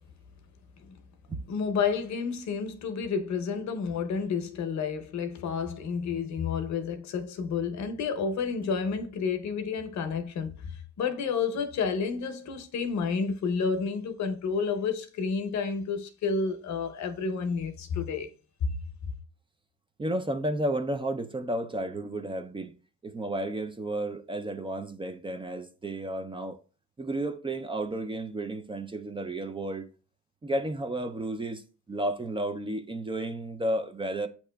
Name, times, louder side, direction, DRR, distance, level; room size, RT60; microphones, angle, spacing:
voice 1, 1.5-10.6 11.0-18.3, left 5 dB, 65° left, 0.7 m, -30 dB
voice 2, 20.0-22.7 23.0-26.6 27.0-29.9 30.4-31.6 31.9-34.3, right 1 dB, 15° right, 0.4 m, -32 dB
8.2 x 2.9 x 2.2 m
cardioid pair, 90°, 30 cm